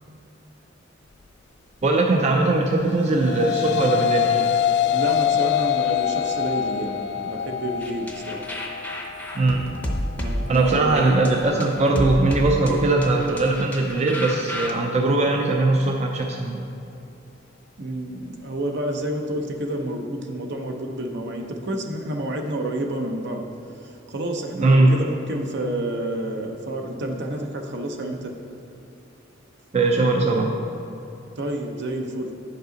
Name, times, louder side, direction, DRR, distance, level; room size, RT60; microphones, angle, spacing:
voice 1, 1.8-4.5 9.3-9.7 10.5-16.7 24.6-24.9 29.7-30.5, right 2 dB, 35° right, 1 dB, 0.5 m, -20 dB
sound 1, 2.9-12.1, left 9 dB, 65° left, 0.3 m, -25 dB
voice 2, 4.9-8.4 10.2-11.0 17.8-23.5 23.8-28.3 31.4-32.3, right 1 dB, 65° right, 3 dB, 0.8 m, -29 dB
sound 2, 7.8-14.7, equal, 10° left, 0.6 m, -31 dB
9.5 x 5.3 x 3.9 m, 2.7 s
head